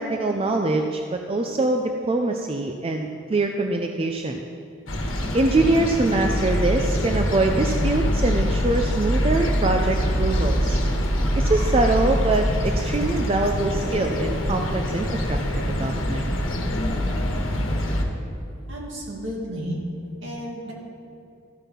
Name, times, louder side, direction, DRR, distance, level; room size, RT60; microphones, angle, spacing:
voice 1, 0.0-4.4 5.1-10.8 11.3-16.3, right 2 dB, 30° right, 3 dB, 0.4 m, -24 dB
sound 1, 4.9-18.0, equal, 80° left, 1.3 m, -24 dB
voice 2, 18.7-19.8 20.2-20.7, equal, 65° right, -3 dB, 2.3 m, -32 dB
13.5 x 5.4 x 5.8 m, 2.7 s
head